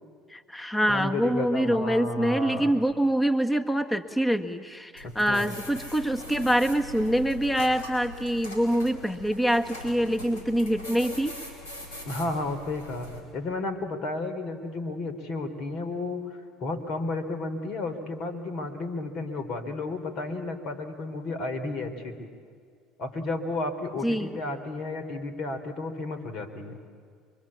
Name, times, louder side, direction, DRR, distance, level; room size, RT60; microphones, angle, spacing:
voice 1, 0.3-11.3 24.0-24.4, equal, 10° left, 7 dB, 1.4 m, -25 dB
voice 2, 0.9-2.7 5.0-5.5 12.0-22.3 23.0-26.8, left 2 dB, 60° left, 8 dB, 3.2 m, -32 dB
sound 1, 5.0-13.2, left 1 dB, 80° left, 5.2 m, -42 dB
24.0 x 24.0 x 8.6 m, 2.2 s
hypercardioid pair, 75°, 0 cm